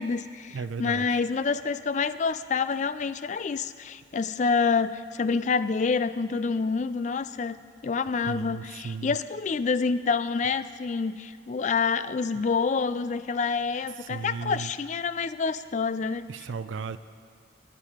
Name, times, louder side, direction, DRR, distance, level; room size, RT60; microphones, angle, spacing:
voice 1, 0.0-7.6 7.8-16.3, left 5 dB, 40° left, 14 dB, 0.3 m, -27 dB
voice 2, 0.5-1.2 8.2-9.2 12.3-12.4 14.0-14.7 16.3-17.0, right 5 dB, 85° right, 13 dB, 0.4 m, -35 dB
21.5 x 7.5 x 4.9 m, 2.1 s
head